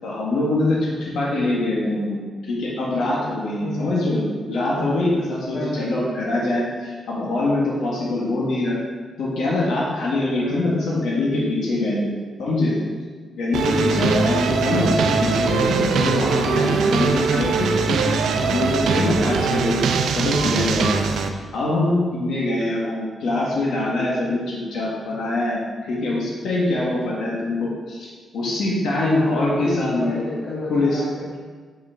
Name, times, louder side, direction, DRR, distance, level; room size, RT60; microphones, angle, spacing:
voice 1, 0.0-8.8 9.2-12.1 12.4-12.8 13.3-18.1 18.4-19.7 20.1-21.0 21.5-30.2 30.7-31.0, left 2 dB, 80° left, -4 dB, 1.6 m, -23 dB
voice 2, 3.6-4.1 5.5-5.9 10.4-10.7 29.0-31.4, left 2 dB, 65° left, -6 dB, 1.3 m, -30 dB
sound 1, 13.5-21.3, right 5 dB, 85° right, 0.5 m, -21 dB
6.5 x 5.7 x 3.6 m, 1.5 s
cardioid pair, 85°, 0 cm